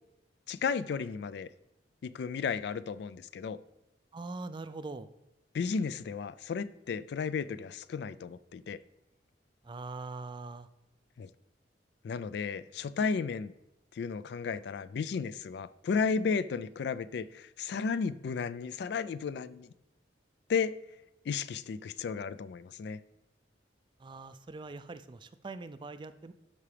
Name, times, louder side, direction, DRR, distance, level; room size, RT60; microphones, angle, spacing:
voice 1, 0.5-1.5 2.0-3.6 5.5-8.8 11.2-11.3 12.0-13.5 13.9-19.7 20.5-20.7 21.3-23.0, left 5 dB, 65° left, 16 dB, 0.3 m, -33 dB
voice 2, 4.1-5.1 9.6-10.7 24.0-26.3, right 3 dB, 25° right, 12 dB, 0.3 m, -42 dB
12.5 x 4.9 x 3.3 m, 1.0 s
head